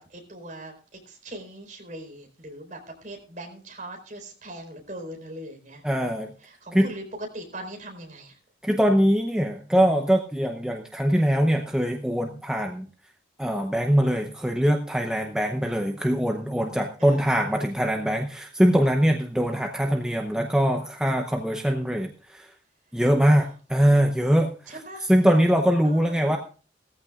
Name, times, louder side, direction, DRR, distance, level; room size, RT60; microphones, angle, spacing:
voice 1, 0.0-7.0 7.3-8.4 17.0-17.3 23.3-23.5 24.7-25.1 25.8-26.4, right 1 dB, 40° right, 2 dB, 4.4 m, -41 dB
voice 2, 5.8-6.3 6.7-6.9 8.6-12.9 13.4-22.5 22.9-24.7 25.1-26.4, equal, 5° right, 2 dB, 0.8 m, -22 dB
18.0 x 14.5 x 2.4 m, 0.38 s
head